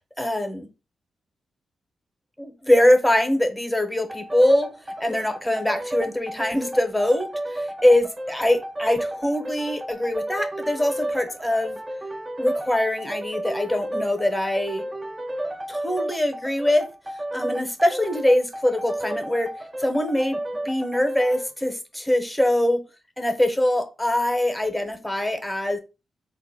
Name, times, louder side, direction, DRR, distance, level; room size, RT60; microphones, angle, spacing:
voice 1, 0.2-0.7 2.4-4.7 5.0-11.8 12.4-14.8 15.7-16.9 17.3-19.5 19.8-20.4 20.6-22.8 23.2-25.8, left 1 dB, 5° left, 0.8 m, -23 dB
sound 1, 4.1-21.5, right 1 dB, 20° right, 0.4 m, -33 dB
3.8 x 2.2 x 4.0 m
cardioid pair, 115°, 0 cm